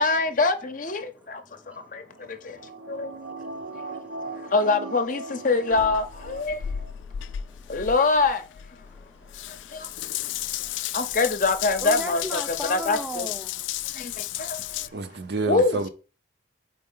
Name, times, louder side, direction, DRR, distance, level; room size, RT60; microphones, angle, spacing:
voice 1, 0.0-1.0 2.9-3.1 4.5-6.6 7.7-8.4 10.9-12.4 12.7-13.3 15.5-15.9, left 3 dB, 45° left, 0.6 m, -23 dB
voice 2, 1.2-4.5 6.5-7.9 8.8-11.1 11.8-13.6, equal, 5° right, 0.5 m, -41 dB
sound 1, 2.1-6.9 7.2-7.3, right 2 dB, 85° right, 0.9 m, -39 dB
Water tap faucet / Bathtub (filling or washing) / Drip, 5.7-14.9, left 12 dB, 85° left, 0.3 m, -34 dB
voice 3, 14.4-15.9, right 2 dB, 65° right, 0.6 m, -30 dB
4.3 x 4.3 x 5.4 m
head